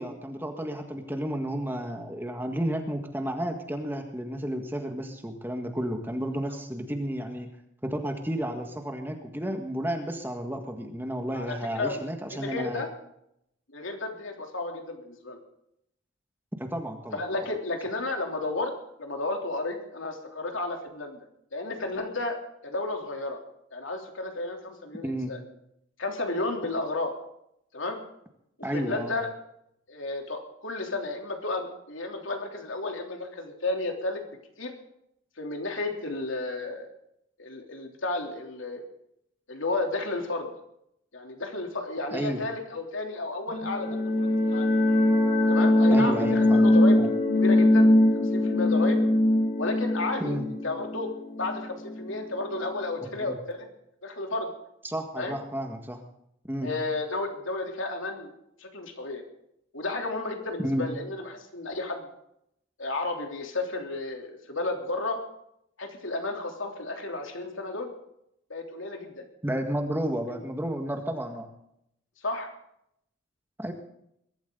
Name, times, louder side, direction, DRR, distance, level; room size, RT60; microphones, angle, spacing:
voice 1, 0.0-7.5 7.8-12.8 16.6-17.2 25.0-25.3 28.6-29.2 42.1-42.4 45.9-47.1 50.2-50.4 53.0-53.4 54.8-56.0 56.5-56.7 60.6-60.9 69.4-71.5 73.6-73.7, equal, 10° right, 4 dB, 1.7 m, -32 dB
voice 2, 11.3-12.0 12.3-12.9 13.7-15.4 17.1-18.7 19.0-21.2 21.5-22.4 22.6-23.4 23.7-25.4 26.0-27.1 27.7-28.0 28.7-29.3 29.9-34.2 34.6-34.7 35.4-36.9 37.4-38.8 39.5-40.5 41.1-44.7 45.5-47.0 47.3-49.0 49.6-50.4 50.6-51.1 51.4-53.7 54.0-54.5 55.2-55.4 56.6-58.3 58.6-59.2 59.7-62.1 62.8-65.2 65.8-67.9 68.5-69.2 72.2-72.5, left 2 dB, 70° left, 3 dB, 3.2 m, -32 dB
sound 1, 43.5-52.1, left 1 dB, 45° left, 2.5 m, -22 dB
22.0 x 13.0 x 3.9 m, 0.75 s
head